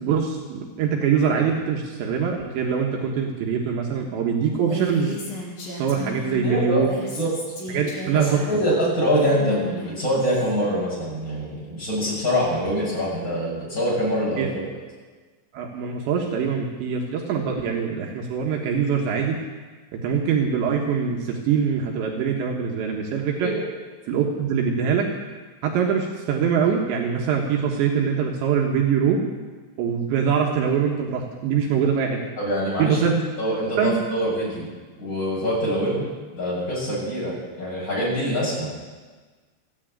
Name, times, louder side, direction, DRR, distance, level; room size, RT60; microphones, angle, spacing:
voice 1, 0.0-5.2 5.7-6.9 7.7-8.4 14.4-14.5 15.5-19.4 19.9-23.5 24.1-25.1 25.6-29.2 29.8-32.2 32.8-33.2 33.8-34.0, right 7 dB, 75° right, 0 dB, 3.5 m, -23 dB
Female speech woman speaking, 4.5-6.4 6.8-10.5, left 2 dB, 50° left, 6.3 m, -34 dB
voice 2, 6.4-6.8 7.1-7.3 8.1-14.6 23.4-23.6 32.4-33.0 33.4-34.7 35.0-36.1 36.3-38.7, equal, 20° left, -6 dB, 7.2 m, -24 dB
15.5 x 9.9 x 8.8 m, 1.4 s
omnidirectional pair, 5.3 m